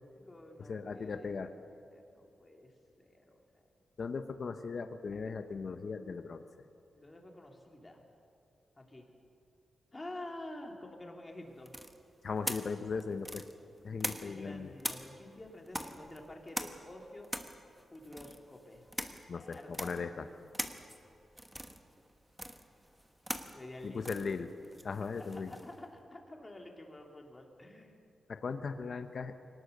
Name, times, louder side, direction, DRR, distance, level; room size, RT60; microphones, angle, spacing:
voice 1, 0.2-1.3 1.6-3.4 6.9-8.0 8.8-9.1 9.9-11.7 13.9-17.3 17.9-18.8 19.3-20.0 23.5-24.1 25.3-28.0, left 1 dB, 20° left, 1 dB, 2.8 m, -49 dB
voice 2, 0.7-1.5 4.0-6.4 12.2-13.4 13.8-14.7 19.3-20.3 23.8-24.5 24.8-25.5 28.3-29.3, left 5 dB, 55° left, 8 dB, 0.9 m, -38 dB
sound 1, 11.7-14.5 14.8-25.8, equal, 5° right, 1.2 m, -42 dB
23.5 x 18.5 x 6.7 m, 2.6 s
wide cardioid pair, 110°, 0 cm